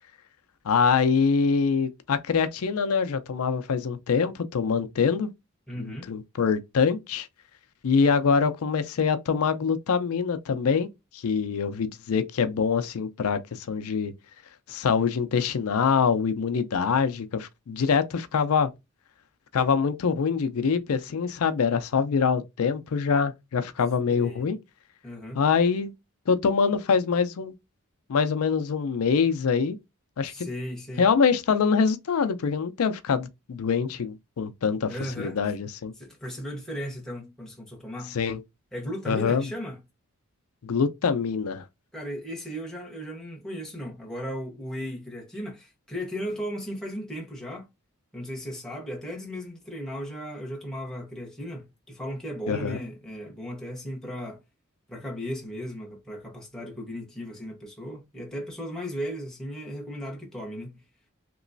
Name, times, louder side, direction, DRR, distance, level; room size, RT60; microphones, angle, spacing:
voice 1, 0.7-5.3 5.8-7.3 7.8-10.9 11.1-14.1 14.7-18.7 19.5-24.6 25.3-25.9 26.3-27.5 28.1-29.8 30.2-30.5 31.0-34.9 35.2-35.9 38.1-38.4 39.1-39.5 40.6-41.6 52.5-52.8, left 5 dB, 75° left, 0.4 m, -24 dB
voice 2, 5.7-6.1 24.1-24.5 25.0-25.4 30.2-31.1 34.9-35.4 36.0-38.2 38.7-39.8 41.9-47.7 48.1-54.4 54.9-60.8, equal, 5° left, 1.0 m, -36 dB
3.0 x 3.0 x 2.6 m
head